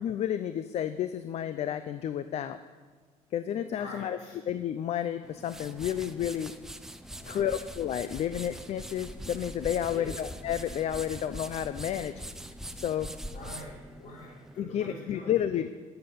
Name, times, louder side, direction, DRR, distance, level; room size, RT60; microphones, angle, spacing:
voice 1, 0.0-2.6 3.3-4.2 4.5-6.5 7.3-12.1 12.8-13.1 14.6-15.7, left 10 dB, 55° left, 11 dB, 0.5 m, -31 dB
voice 2, 3.7-4.4 7.1-7.6 9.9-10.2 13.1-15.6, left 1 dB, 80° left, -5 dB, 4.9 m, -45 dB
sound 1, 5.2-14.6, equal, 5° right, 0.6 m, -43 dB
13.5 x 7.9 x 6.9 m, 1.5 s
cardioid pair, 125°, 13 cm